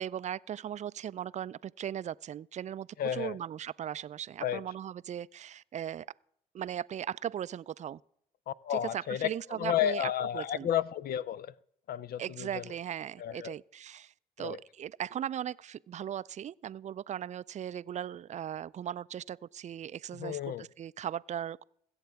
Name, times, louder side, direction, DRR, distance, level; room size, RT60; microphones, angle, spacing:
voice 1, 0.0-6.1 6.5-8.0 8.7-10.7 12.2-21.6, right 10 dB, 40° right, 0.4 m, -38 dB
voice 2, 3.0-3.4 4.4-4.6 8.5-9.3 9.6-11.5 11.9-12.6 13.2-13.5 14.4-14.6 20.2-20.7, left 11 dB, 60° left, 0.5 m, -32 dB
22.0 x 8.1 x 3.5 m
hypercardioid pair, 55°, 18 cm